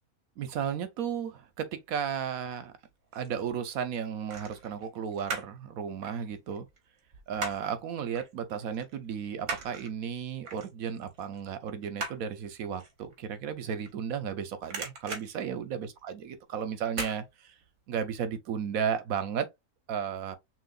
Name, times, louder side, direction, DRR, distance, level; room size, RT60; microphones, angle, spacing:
voice 1, 0.4-2.7 3.1-6.7 7.3-17.5 17.9-19.5 19.9-20.4, right 7 dB, 75° right, 1.2 m, -34 dB
sound 1, 2.8-3.4 4.3-5.6 5.9-7.8 8.2-8.3 8.7-14.3 14.6-16.3 16.9-17.2 17.6-17.7, right 3 dB, 60° right, 1.5 m, -39 dB
6.0 x 2.6 x 2.4 m
omnidirectional pair, 1.5 m